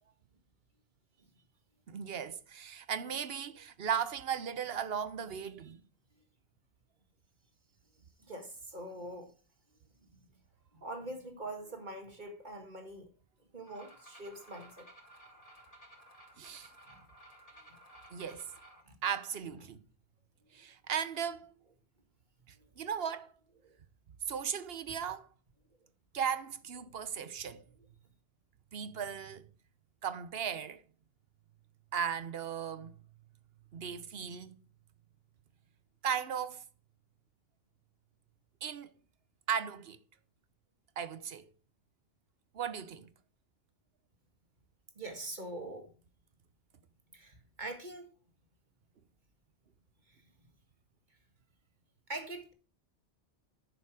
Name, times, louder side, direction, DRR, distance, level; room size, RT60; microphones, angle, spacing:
voice 1, 1.9-5.8 16.4-16.7 18.1-18.4 19.0-19.8 20.5-21.5 22.5-23.3 24.3-25.3 26.1-27.6 28.7-29.5 30.0-30.8 31.9-32.9 33.7-34.6 36.0-36.6 38.6-38.9 39.5-40.0 41.0-41.5 42.5-43.1, right 7 dB, 65° right, 1.1 m, -36 dB
voice 2, 8.3-9.3 10.7-13.1 13.5-14.9 16.9-17.0 18.3-18.4 18.8-18.9 19.6-19.7 21.7-21.8 22.6-22.7 23.6-23.8 26.7-26.8 27.8-27.9 45.0-45.9 47.1-48.1 52.1-52.5, right 1 dB, 45° right, 2.1 m, -44 dB
sound 1, 13.7-18.8, right 1 dB, 35° left, 3.0 m, -56 dB
10.5 x 7.1 x 4.8 m
omnidirectional pair, 1.1 m